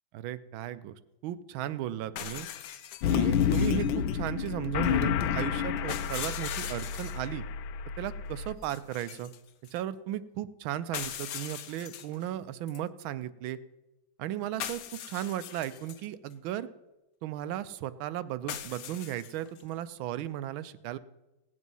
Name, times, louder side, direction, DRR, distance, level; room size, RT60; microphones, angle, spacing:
voice 1, 0.1-0.9 1.2-2.5 3.1-7.4 8.0-9.3 9.7-13.6 14.2-16.7 17.2-21.0, right 12 dB, 90° right, 14 dB, 1.4 m, -35 dB
sound 1, 2.2-4.0 5.9-7.3 8.6-9.8 10.9-12.3 12.7-12.8 14.6-16.1 18.5-19.6, left 10 dB, 65° left, 0.9 m, -40 dB
sound 2, 3.0-8.5, left 8 dB, 80° left, 1.4 m, -29 dB
17.0 x 8.2 x 5.4 m, 1.0 s
omnidirectional pair, 2.1 m